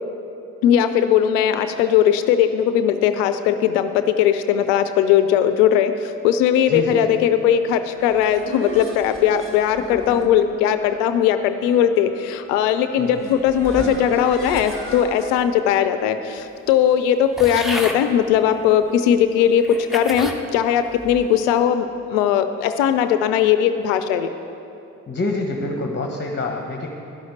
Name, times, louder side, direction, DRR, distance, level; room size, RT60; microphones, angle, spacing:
voice 1, 0.6-6.0 6.2-24.3, left 9 dB, 80° left, 10 dB, 0.6 m, -19 dB
voice 2, 6.7-7.1 13.0-13.4 13.7-14.1 25.1-26.9, left 2 dB, 30° left, 2 dB, 1.3 m, -27 dB
sound 1, 7.8-15.3, right 1 dB, 30° right, 2.4 m, -36 dB
sound 2, 17.4-18.0 18.8-18.9 19.6-20.4 21.0-21.4, left 1 dB, ahead, 1.3 m, -30 dB
11.5 x 6.3 x 8.0 m, 2.8 s
hypercardioid pair, 45°, 39 cm